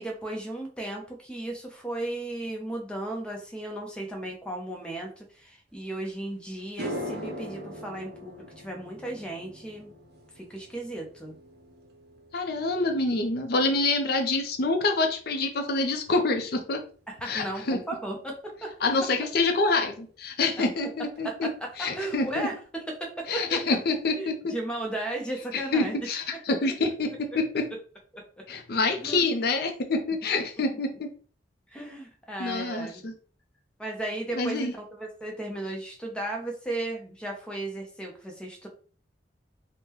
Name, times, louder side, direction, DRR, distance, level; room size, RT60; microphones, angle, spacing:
voice 1, 0.0-9.9 10.4-11.3 17.1-19.1 20.6-20.7 21.0-23.6 24.2-26.0 26.5-26.6 28.1-28.5 29.0-29.2 31.7-33.0 33.8-38.7, right 1 dB, 5° left, 0 dB, 0.6 m, -35 dB
sound 1, 6.1-6.2 6.6-15.1 15.4-15.8 19.4-19.5 21.2-21.3 21.5-21.7 21.9-22.5, equal, 65° right, 0.7 m, -42 dB
voice 2, 12.3-16.8 17.2-17.8 18.8-21.5 21.8-22.5 23.3-24.5 25.5-27.7 28.5-31.1 32.4-33.1 34.4-34.7, left 3 dB, 60° left, 5 dB, 0.5 m, -27 dB
3.6 x 2.1 x 2.9 m, 0.40 s
head